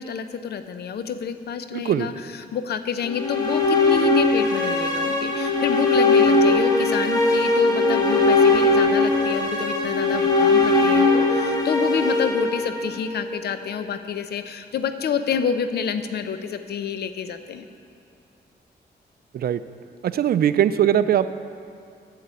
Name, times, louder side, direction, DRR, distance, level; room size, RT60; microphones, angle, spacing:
voice 1, 0.0-17.6, left 7 dB, 65° left, 10 dB, 0.7 m, -28 dB
voice 2, 1.7-2.1 19.3-19.6 20.0-21.3, right 10 dB, 60° right, 13 dB, 0.4 m, -20 dB
sound 1, 3.0-13.2, left 3 dB, 20° left, 1.4 m, -20 dB
9.8 x 6.6 x 8.3 m, 2.4 s
cardioid pair, 110°, 18 cm